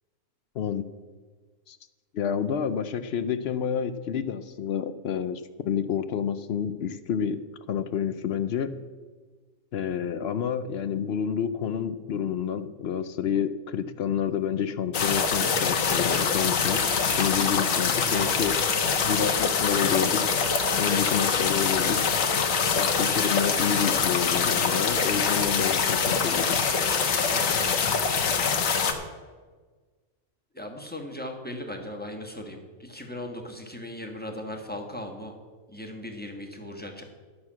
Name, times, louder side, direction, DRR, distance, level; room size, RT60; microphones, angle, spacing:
voice 1, 2.1-7.4 7.7-8.8 9.7-16.8 17.2-18.6 19.0-20.2 20.8-22.0 22.7-26.6, left 8 dB, 60° left, 13 dB, 0.7 m, -29 dB
sound 1, 14.9-28.9, left 5 dB, 85° left, 1.4 m, -24 dB
voice 2, 20.6-20.9 27.3-27.7 30.5-35.3 35.7-37.0, left 1 dB, 10° left, 2 dB, 1.3 m, -38 dB
11.0 x 6.3 x 7.3 m, 1.4 s
omnidirectional pair, 1.4 m